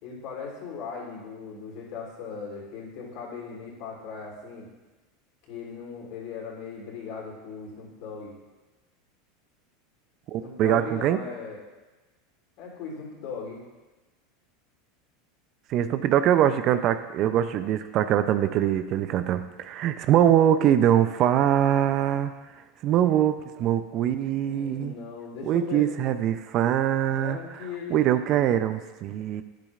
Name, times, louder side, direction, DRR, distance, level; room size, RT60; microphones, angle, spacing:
voice 1, 0.0-4.7 5.4-8.4 10.4-11.6 12.6-13.6 24.4-25.9 27.1-28.2, left 5 dB, 60° left, -2 dB, 3.3 m, -38 dB
voice 2, 10.3-11.2 15.7-22.3 22.8-24.9 25.4-27.4 27.9-29.4, right 10 dB, 50° right, 11 dB, 0.5 m, -23 dB
11.5 x 9.8 x 2.5 m, 1.2 s
hypercardioid pair, 90°, 0 cm